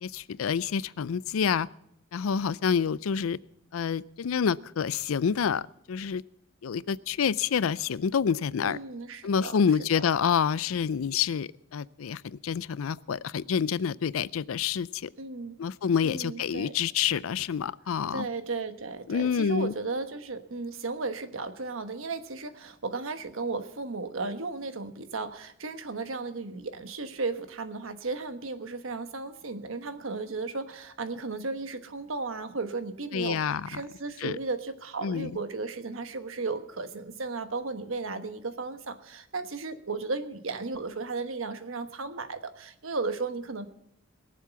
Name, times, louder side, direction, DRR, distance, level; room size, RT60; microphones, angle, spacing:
voice 1, 0.0-1.7 2.1-3.4 3.7-6.2 6.6-8.8 9.2-15.1 15.6-18.3 19.1-19.7 33.1-33.8 34.2-34.4 35.0-35.3, left 7 dB, 90° left, 20 dB, 0.4 m, -28 dB
voice 2, 8.6-9.5 9.9-10.0 15.2-15.5 16.0-16.7 18.1-43.7, right 3 dB, 80° right, 9 dB, 1.2 m, -35 dB
21.5 x 7.5 x 5.8 m, 0.74 s
head